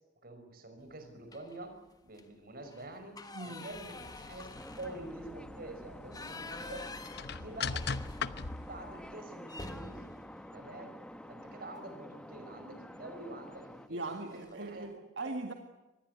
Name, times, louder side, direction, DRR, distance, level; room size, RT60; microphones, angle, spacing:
voice 1, 0.2-1.8 2.0-4.5 4.8-6.8 7.3-8.1 8.6-10.1 10.5-11.0 11.3-14.9 15.2-15.3, right 2 dB, 50° right, 7 dB, 5.5 m, -47 dB
sound 1, 1.3-1.7 2.1-2.2 2.6-8.6 8.9-9.0 9.4-11.6 12.9-13.2 13.6-13.7 14.0-14.7, left 2 dB, 20° left, 1.7 m, -48 dB
voice 2, 3.3-3.7 13.9-15.5, right 2 dB, 75° right, 5 dB, 2.1 m, -40 dB
sound 2, 3.7-9.1, left 5 dB, 60° left, 0.9 m, -41 dB
sound 3, 4.5-13.9, equal, 5° left, 1.3 m, -49 dB
25.5 x 20.5 x 8.2 m, 1.0 s
head